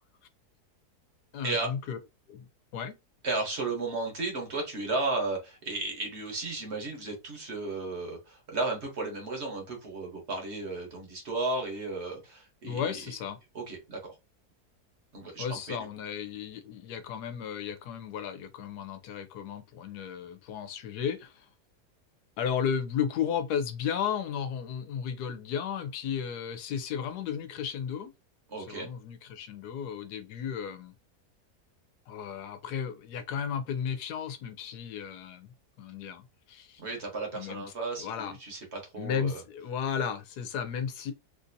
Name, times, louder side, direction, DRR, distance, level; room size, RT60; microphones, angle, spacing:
voice 1, 1.3-2.0 2.3-3.0 12.6-13.4 15.4-21.5 22.4-28.1 28.6-30.9 32.1-35.5 35.8-36.8 37.3-37.6 38.0-38.3 39.0-41.1, left 7 dB, 85° left, 1.2 m, -34 dB
voice 2, 3.2-13.0 13.5-14.0 15.1-15.8 28.5-28.9 36.8-39.3, right 3 dB, 50° right, 1.2 m, -34 dB
3.3 x 2.5 x 2.6 m
omnidirectional pair, 1.7 m